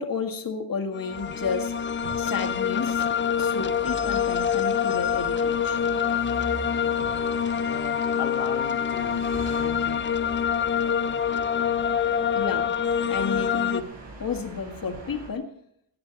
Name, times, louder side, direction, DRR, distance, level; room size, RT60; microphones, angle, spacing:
voice 1, 0.0-1.7 2.2-3.0 3.4-5.8 12.3-12.7 13.1-13.9 14.2-15.5, left 5 dB, 45° left, 4 dB, 1.7 m, -31 dB
sound 1, 0.9-13.8, left 7 dB, 25° left, 0.4 m, -26 dB
sound 2, 1.1-15.3, right 2 dB, 65° right, 5.0 m, -42 dB
voice 2, 7.7-10.0 12.0-12.1, left 10 dB, 85° left, 7 dB, 0.8 m, -37 dB
18.5 x 8.5 x 4.0 m, 0.70 s
wide cardioid pair, 125°, 47 cm